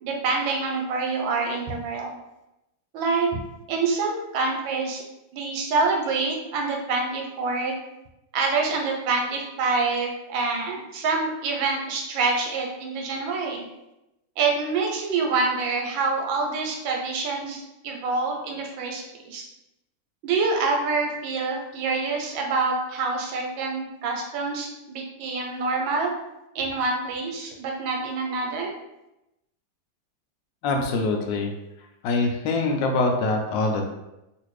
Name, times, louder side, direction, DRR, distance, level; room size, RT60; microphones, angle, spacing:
voice 1, 0.0-2.1 2.9-3.3 3.7-5.0 5.3-7.7 8.3-13.7 14.4-19.4 20.2-26.1 26.5-28.7, right 4 dB, 90° right, 1 dB, 1.4 m, -26 dB
voice 2, 30.6-31.5 32.0-33.8, left 3 dB, 80° left, 2 dB, 1.2 m, -24 dB
3.2 x 2.5 x 3.1 m, 0.92 s
omnidirectional pair, 2.0 m